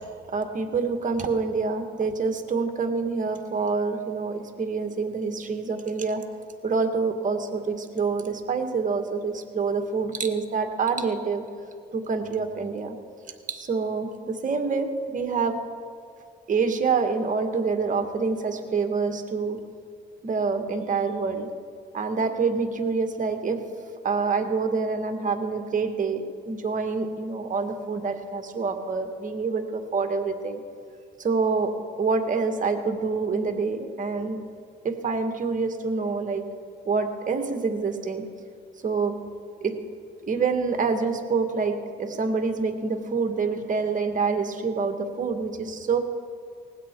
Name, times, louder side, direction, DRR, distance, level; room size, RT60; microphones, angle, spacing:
voice 1, 0.0-6.2 6.6-11.4 11.9-13.0 13.5-15.6 16.5-19.6 20.2-21.5 21.9-23.7 24.0-30.6 31.2-31.7 32.0-34.4 34.8-36.5 36.9-38.2 38.8-39.2 39.6-39.8 40.3-46.0, right 4 dB, 40° right, 6 dB, 1.9 m, -26 dB
19.0 x 16.0 x 4.7 m, 2.4 s
cardioid pair, 90°, 20 cm